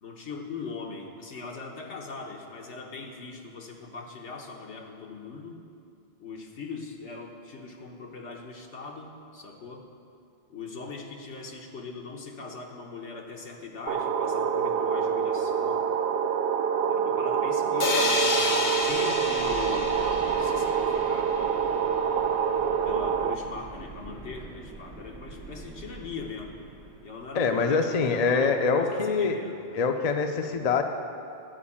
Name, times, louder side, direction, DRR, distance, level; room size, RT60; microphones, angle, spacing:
voice 1, 0.0-5.6 6.2-9.9 10.5-15.9 16.9-21.9 22.8-26.5 27.0-29.6, left 4 dB, 80° left, 1 dB, 1.4 m, -40 dB
sound 1, 13.9-23.3, right 7 dB, 65° right, 0.7 m, -26 dB
sound 2, 17.8-21.6, left 3 dB, 60° left, 1.1 m, -30 dB
sound 3, 17.9-27.4, right 3 dB, 85° right, 1.3 m, -45 dB
voice 2, 27.4-29.4 29.7-30.8, left 5 dB, 45° left, 5 dB, 0.6 m, -24 dB
12.5 x 4.6 x 8.5 m, 2.5 s
omnidirectional pair, 1.2 m